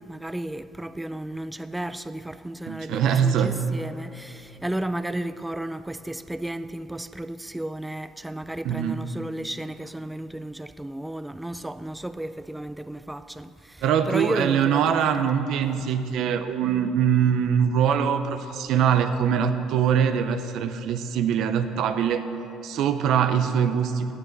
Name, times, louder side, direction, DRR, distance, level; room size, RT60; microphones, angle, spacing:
voice 1, 0.0-15.1 15.6-15.8, right 1 dB, 5° right, 0.3 m, -33 dB
voice 2, 2.7-3.6 8.6-9.0 13.8-22.3 22.6-24.1, right 8 dB, 65° right, 0.6 m, -23 dB
17.0 x 10.0 x 4.0 m
cardioid pair, 100°, 0 cm